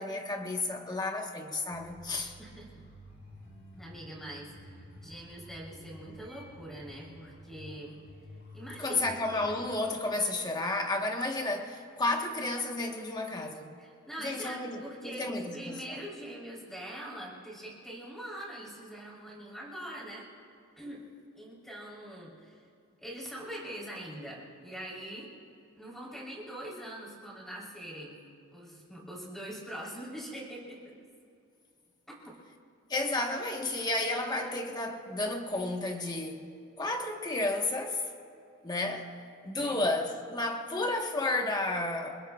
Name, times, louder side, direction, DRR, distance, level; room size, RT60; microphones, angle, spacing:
voice 1, 0.0-2.3 8.8-13.7 14.2-16.0 32.9-36.5 36.8-38.1 38.6-39.1 39.4-42.2, left 2 dB, 20° left, 2 dB, 1.2 m, -32 dB
sound 1, 1.7-9.5, equal, 50° left, 4.6 m, -51 dB
voice 2, 3.8-8.0 8.5-9.1 13.8-20.3 20.8-21.0 21.4-22.6 23.0-25.3 25.8-28.2 28.5-30.9 32.3-32.4 39.5-39.8, right 1 dB, ahead, -5 dB, 3.5 m, -43 dB
29.0 x 20.0 x 2.4 m, 2.5 s
head